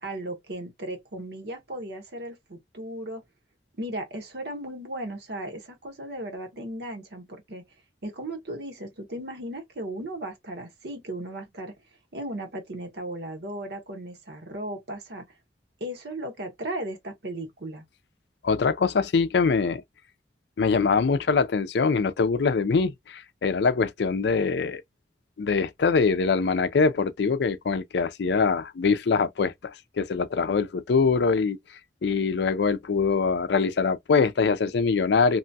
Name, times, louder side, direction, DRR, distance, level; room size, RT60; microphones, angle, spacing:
voice 1, 0.0-3.2 3.7-7.6 8.0-11.7 12.1-15.3 15.8-17.8, right 1 dB, 65° right, 1.1 m, -36 dB
voice 2, 18.4-19.8 20.6-24.8 25.4-31.6 32.0-35.4, left 5 dB, 65° left, 0.4 m, -23 dB
3.0 x 2.2 x 2.7 m
head